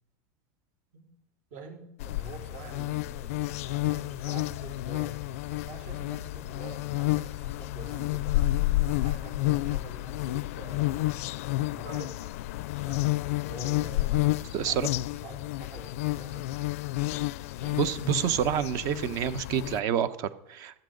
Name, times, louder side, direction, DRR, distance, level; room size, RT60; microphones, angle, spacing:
voice 1, 1.5-5.2 5.5-8.4 8.9-11.0 11.7-12.2 12.9-13.1 13.4-16.7 17.5-17.8, right 3 dB, 65° right, -1 dB, 5.0 m, -46 dB
sound 1, 2.0-19.8, left 18 dB, 75° left, 0.4 m, -30 dB
voice 2, 14.5-14.9 17.8-20.8, right 9 dB, 50° right, 13 dB, 1.0 m, -28 dB
16.0 x 13.0 x 3.9 m, 0.82 s
supercardioid pair, 130°, 8 cm